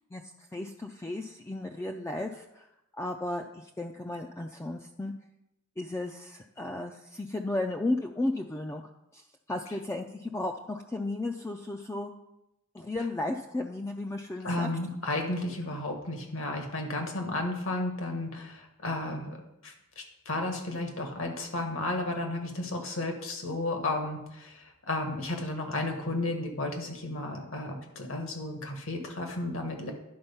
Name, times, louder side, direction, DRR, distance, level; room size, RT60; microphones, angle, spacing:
voice 1, 0.5-2.7 3.0-5.1 5.8-8.8 9.1-12.1 12.7-14.7, left 2 dB, 15° left, 4 dB, 0.3 m, -34 dB
voice 2, 14.4-19.4 19.6-29.9, left 2 dB, 65° left, 3 dB, 1.5 m, -33 dB
10.5 x 4.3 x 5.5 m, 0.87 s
head